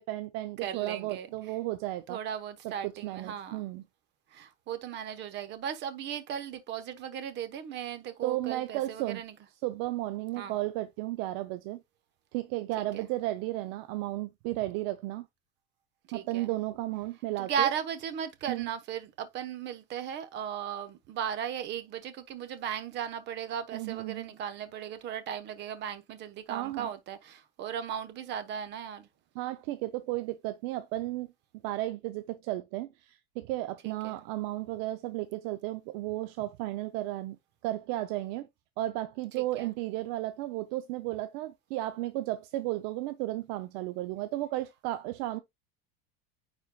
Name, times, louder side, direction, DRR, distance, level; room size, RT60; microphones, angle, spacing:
voice 1, 0.0-2.2 2.8-3.8 8.2-9.2 9.6-11.8 12.3-15.3 16.1-17.7 18.5-18.7 23.7-24.3 26.5-26.9 29.4-31.3 31.6-37.4 37.6-38.5 38.8-45.4, right 16 dB, 55° right, 0.6 m, -34 dB
voice 2, 0.6-1.6 2.1-3.7 4.3-9.3 10.4-10.6 12.8-13.1 16.1-16.5 17.4-29.1 33.8-34.2 39.4-39.7, right 9 dB, 35° right, 1.1 m, -36 dB
9.5 x 4.3 x 2.3 m
cardioid pair, 165°, 31 cm